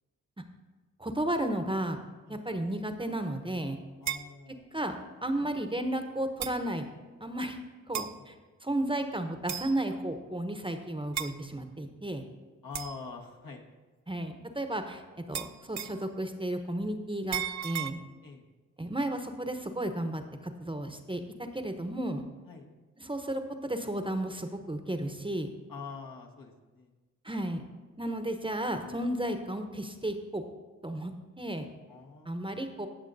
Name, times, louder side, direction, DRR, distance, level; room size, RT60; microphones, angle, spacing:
voice 1, 1.0-2.0 2.3-3.8 4.7-5.0 5.2-6.9 7.2-7.6 7.9-8.3 8.6-12.2 14.1-15.0 15.3-18.0 18.8-21.2 21.5-22.2 23.0-25.5 27.2-27.6 28.0-30.4 30.8-31.7 32.3-32.9, right 1 dB, 15° right, 6 dB, 0.8 m, -33 dB
voice 2, 4.0-4.7 5.4-5.5 8.2-8.3 12.6-13.6 18.2-18.5 22.5-22.7 25.7-26.9 31.9-32.7, left 4 dB, 70° left, 0 dB, 1.4 m, -45 dB
sound 1, 4.1-4.3 5.4-5.5 6.4-6.6 7.9-8.2 9.5-9.8 11.1-11.4 12.7-13.0 15.3-16.1 17.3-17.9, right 10 dB, 50° right, 0.5 m, -35 dB
18.0 x 6.3 x 2.6 m, 1.3 s
cardioid pair, 45°, 35 cm